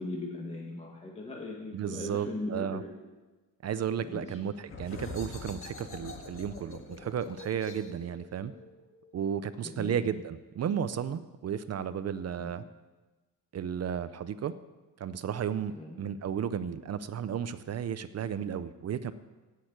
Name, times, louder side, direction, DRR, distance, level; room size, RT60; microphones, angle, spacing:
voice 1, 0.0-2.9 4.0-4.3 9.6-10.0 12.4-12.5 15.7-16.0, left 2 dB, 15° left, -2 dB, 1.8 m, -38 dB
voice 2, 1.7-2.8 3.6-8.5 9.1-12.6 13.5-14.5 15.0-19.1, right 8 dB, 40° right, 13 dB, 0.6 m, -33 dB
sound 1, 4.6-10.0, left 3 dB, 30° left, 1.7 m, -45 dB
16.0 x 6.5 x 8.8 m, 1.2 s
cardioid pair, 160°, 40 cm